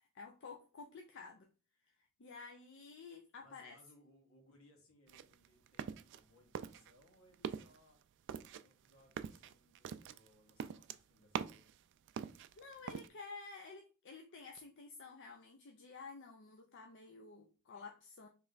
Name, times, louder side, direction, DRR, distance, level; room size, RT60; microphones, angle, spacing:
voice 1, 0.0-1.5 1.8-3.8 12.6-18.3, left 4 dB, 60° left, 0.5 m, -52 dB
voice 2, 3.4-8.0 8.6-11.7, left 1 dB, 80° left, 1.7 m, -67 dB
sound 1, 5.1-6.2 6.5-7.1 7.3-7.8 8.3-11.7 12.1-13.1, right 7 dB, 60° right, 0.3 m, -43 dB
3.2 x 3.2 x 4.0 m
head